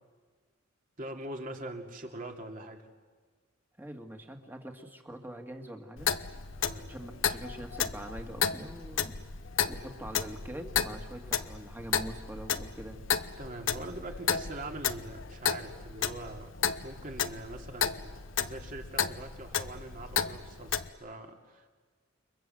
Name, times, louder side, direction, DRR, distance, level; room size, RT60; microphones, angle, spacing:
voice 1, 1.0-2.9 6.6-6.9 13.4-16.5 16.8-21.7, right 2 dB, 45° right, 3 dB, 2.8 m, -43 dB
voice 2, 3.8-6.1 6.9-9.2 9.7-13.0, right 1 dB, 10° right, 4 dB, 2.1 m, -43 dB
Clock, 6.0-20.9, left 7 dB, 75° left, 0.9 m, -33 dB
29.0 x 23.5 x 7.8 m, 1.5 s
head